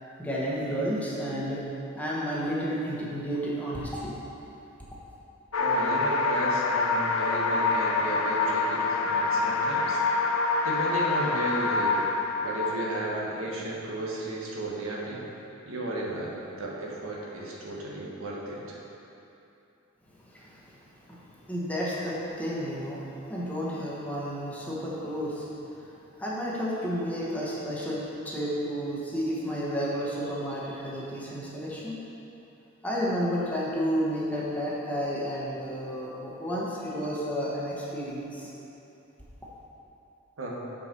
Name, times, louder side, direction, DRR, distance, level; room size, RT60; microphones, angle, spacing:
voice 1, 0.2-1.6 1.9-4.1 20.3-20.5 21.1-23.0 23.3-25.5 25.8-25.9 26.2-32.0 32.8-38.5, equal, 5° left, -6 dB, 1.1 m, -31 dB
sound 1, 5.5-13.1, left 3 dB, 75° left, 0.5 m, -26 dB
voice 2, 5.6-10.0 10.6-12.0 12.4-15.2 15.6-16.3 16.6-18.6 40.4-40.6, right 2 dB, 75° right, -4 dB, 1.4 m, -34 dB
7.0 x 4.9 x 5.9 m, 3.0 s
head